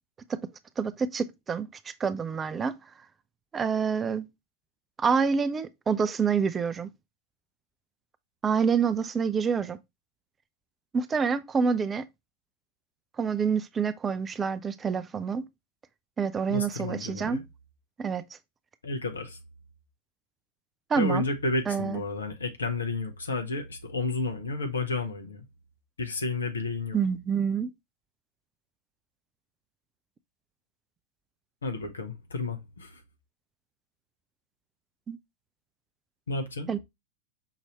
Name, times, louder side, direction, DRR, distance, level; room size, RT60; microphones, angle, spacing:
voice 1, 0.8-2.8 3.5-4.3 5.0-6.9 8.4-9.8 10.9-12.1 13.2-15.5 16.2-17.4 18.0-18.2 20.9-21.2 21.7-22.0 26.9-27.7 35.1-35.2 36.7-36.8, right 6 dB, 20° right, 0.3 m, -27 dB
voice 2, 16.5-17.4 18.8-19.4 21.0-25.5 26.0-27.0 31.6-33.0 36.3-36.7, left 3 dB, 75° left, 0.9 m, -31 dB
5.7 x 2.7 x 2.9 m
figure-of-eight pair, 90°, 0 cm